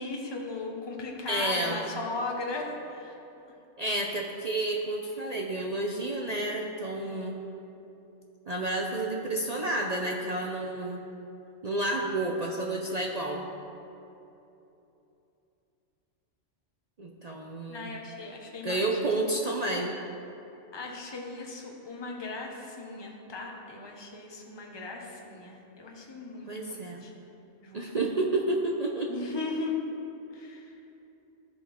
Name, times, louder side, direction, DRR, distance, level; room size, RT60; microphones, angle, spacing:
voice 1, 0.0-3.1 17.7-19.0 20.7-27.2 27.6-27.8 29.1-29.8 30.3-30.7, left 3 dB, 25° left, 0 dB, 1.0 m, -37 dB
voice 2, 1.3-1.8 3.8-7.3 8.5-11.0 11.6-13.4 17.0-17.9 18.6-19.9 26.5-27.0 27.7-29.1, right 2 dB, 45° right, 0 dB, 0.6 m, -30 dB
13.5 x 5.2 x 4.3 m, 2.9 s
omnidirectional pair, 1.3 m